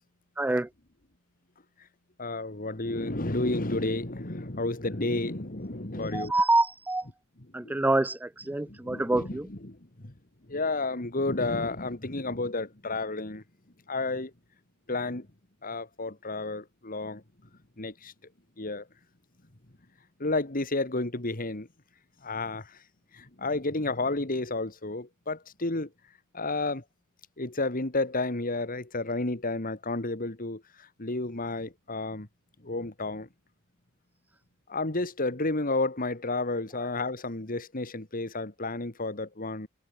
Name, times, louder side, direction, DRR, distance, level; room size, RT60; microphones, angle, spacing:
voice 1, 0.4-0.7 6.0-7.1 7.5-9.5, right 2 dB, 10° right, 0.3 m, -26 dB
voice 2, 2.2-6.3 7.6-7.7 8.7-9.8 10.0-10.1 10.5-13.4 13.9-14.3 14.9-15.3 15.6-17.2 17.8-18.1 18.6-18.8 20.2-21.7 22.2-22.7 23.1-25.9 26.3-26.8 27.4-30.6 31.0-32.3 32.6-33.3 34.7-39.7, left 2 dB, 45° left, 2.3 m, -31 dB
head